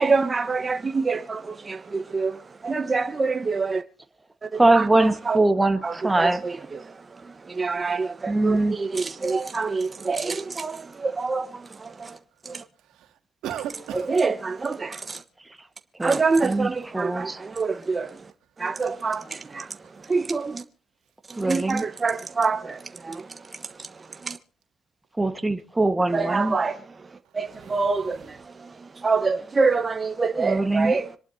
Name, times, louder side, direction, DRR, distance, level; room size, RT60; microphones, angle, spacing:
voice 1, 0.0-3.8 4.4-5.4 5.8-12.2 12.4-12.6 13.9-15.2 16.0-18.2 18.6-19.8 20.0-20.6 21.3-24.4 26.1-26.8 27.3-31.1, right 4 dB, 30° right, 1.2 m, -26 dB
voice 2, 4.5-6.6 8.2-8.8 16.0-17.4 21.4-21.8 25.2-26.6 30.4-30.9, right 2 dB, 15° right, 1.5 m, -22 dB
voice 3, 12.8-14.1 19.1-19.3 19.8-19.9 21.5-21.6 27.2-28.3, right 10 dB, 85° right, 2.3 m, -38 dB
26.5 x 11.5 x 2.8 m
cardioid pair, 90°, 0 cm